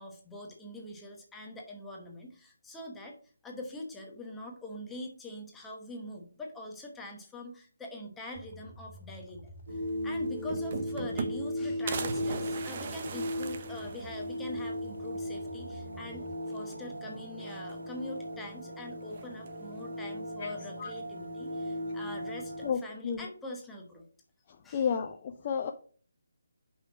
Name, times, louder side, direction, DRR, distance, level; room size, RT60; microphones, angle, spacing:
voice 1, 0.0-3.2 3.4-24.1 24.6-24.9, left 1 dB, 5° left, 0 dB, 1.0 m, -44 dB
sound 1, 8.3-16.3, equal, 50° left, 1.9 m, -51 dB
sound 2, 9.7-22.7, left 1 dB, 75° right, 3.5 m, -37 dB
sound 3, 9.9-10.0 10.2-11.6 11.9-14.5 14.9-15.0 15.2-15.3 16.5-17.0 17.3-18.1 19.1-19.7, right 5 dB, 40° right, 0.8 m, -39 dB
voice 2, 22.6-23.3 24.7-25.7, left 7 dB, 30° left, 5 dB, 0.5 m, -31 dB
5.5 x 4.4 x 6.1 m, 0.43 s
hypercardioid pair, 165°, 0 cm